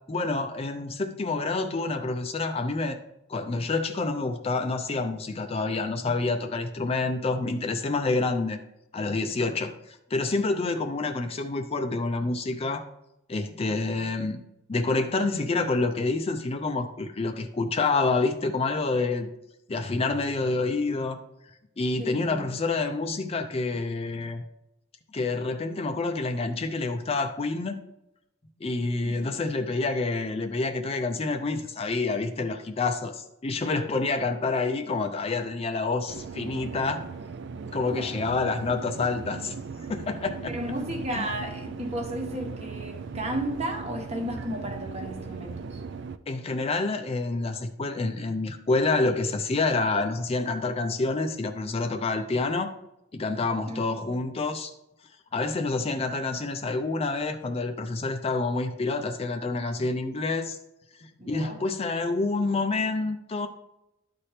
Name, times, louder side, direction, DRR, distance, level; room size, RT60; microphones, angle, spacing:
voice 1, 0.1-3.0 3.3-8.6 8.9-12.8 13.3-14.4 14.7-19.3 19.7-21.2 21.8-24.4 25.1-27.8 28.6-37.0 37.7-39.5 39.9-40.5 41.1-41.3 46.3-52.7 53.1-54.7 55.3-60.6 61.0-63.5, left 3 dB, 30° left, 0.4 m, -28 dB
voice 2, 22.0-22.5 29.0-29.4 37.8-38.3 40.5-45.8 53.7-54.1 61.2-61.6, right 1 dB, 30° right, 1.1 m, -34 dB
sound 1, 36.1-46.2, right 5 dB, 60° right, 0.4 m, -38 dB
12.0 x 4.3 x 3.3 m
head